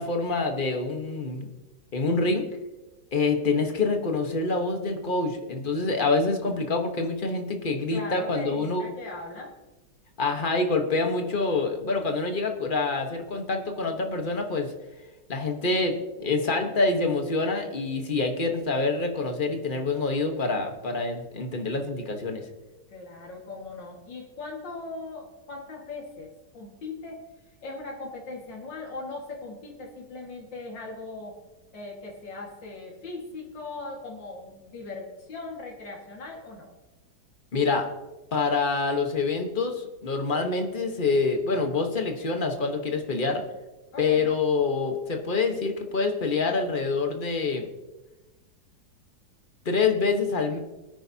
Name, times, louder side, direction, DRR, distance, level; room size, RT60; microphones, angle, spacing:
voice 1, 0.0-1.5 1.9-2.4 3.1-8.8 10.2-14.7 15.3-22.5 37.5-37.9 38.3-43.4 44.0-47.7 49.6-50.6, left 3 dB, 30° left, 4 dB, 1.2 m, -26 dB
voice 2, 7.9-9.5 22.9-26.3 26.5-27.2 27.6-31.4 31.7-36.7 43.9-44.4, left 3 dB, 85° left, -1 dB, 2.6 m, -39 dB
20.5 x 9.9 x 2.8 m, 1.1 s
omnidirectional pair, 1.9 m